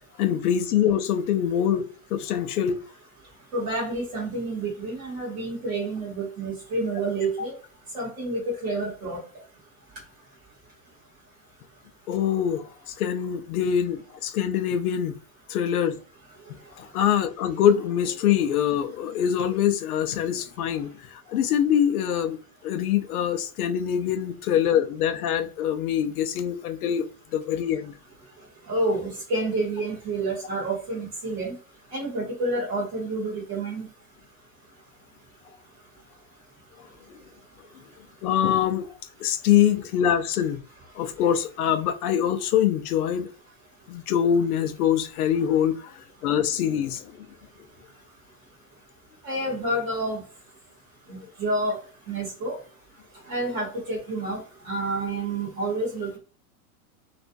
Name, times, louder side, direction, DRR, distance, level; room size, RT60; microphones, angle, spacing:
voice 1, 0.2-2.8 12.1-15.2 15.5-16.0 16.8-22.4 22.6-27.1 27.3-27.9 38.2-38.9 39.2-40.6 40.9-43.3 43.9-47.3, left 9 dB, 85° left, 0.6 m, -24 dB
voice 2, 3.5-7.5 7.9-9.2 28.7-31.5 31.9-33.9 49.2-50.2 51.1-51.8 52.1-52.5 53.3-56.2, right 2 dB, 15° right, 0.5 m, -29 dB
2.5 x 2.2 x 2.5 m
supercardioid pair, 175°, 43 cm